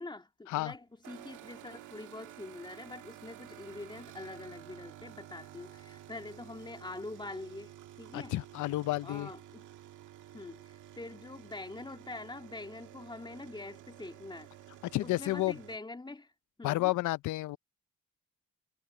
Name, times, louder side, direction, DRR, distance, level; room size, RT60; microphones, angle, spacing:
voice 1, 0.0-8.4 9.0-9.6 10.3-14.5 15.0-16.3 16.6-16.9, left 2 dB, 15° left, 2.8 m, -45 dB
sound 1, 1.0-15.8, right 12 dB, 75° right, 1.9 m, -52 dB
voice 2, 8.1-9.3 14.9-15.6 16.6-17.6, left 18 dB, 75° left, 0.6 m, -31 dB
cardioid pair, 90°, 30 cm